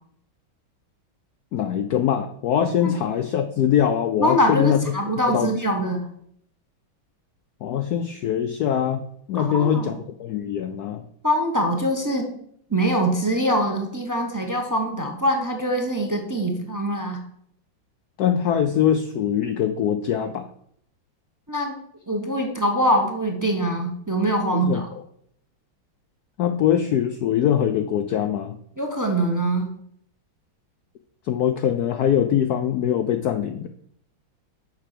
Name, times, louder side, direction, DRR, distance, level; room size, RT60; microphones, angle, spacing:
voice 1, 1.5-5.0 5.3-5.5 7.6-9.0 9.3-9.9 10.2-11.0 18.2-20.5 24.5-25.0 26.4-28.6 31.2-33.7, left 9 dB, 85° left, 8 dB, 0.8 m, -22 dB
voice 2, 4.2-6.1 9.4-9.9 11.2-12.3 12.7-17.2 21.5-21.8 22.1-24.9 28.8-29.7, equal, 20° right, 3 dB, 0.5 m, -23 dB
6.7 x 5.7 x 6.7 m, 0.69 s
omnidirectional pair, 2.2 m